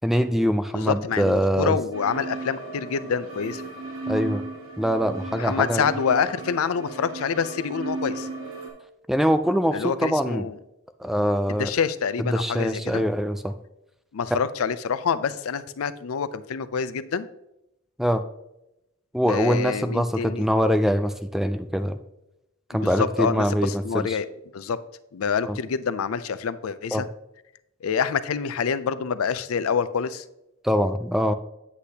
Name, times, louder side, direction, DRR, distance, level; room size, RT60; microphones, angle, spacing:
voice 1, 0.0-1.8 4.1-4.4 4.8-5.9 9.1-10.5 11.0-11.7 12.2-13.6 18.0-18.2 19.1-22.0 22.7-24.2 25.5-25.6 26.9-27.0 30.6-31.3, equal, ahead, 10 dB, 0.3 m, -23 dB
voice 2, 0.7-3.6 5.3-8.3 9.7-10.6 11.6-13.0 14.1-17.3 19.3-20.5 22.7-24.3 24.5-24.8 25.1-27.1 27.8-30.2, left 6 dB, 85° left, 14 dB, 0.4 m, -27 dB
sound 1, 1.9-8.7, right 3 dB, 80° right, 2.6 m, -35 dB
8.3 x 8.1 x 2.8 m, 0.88 s
head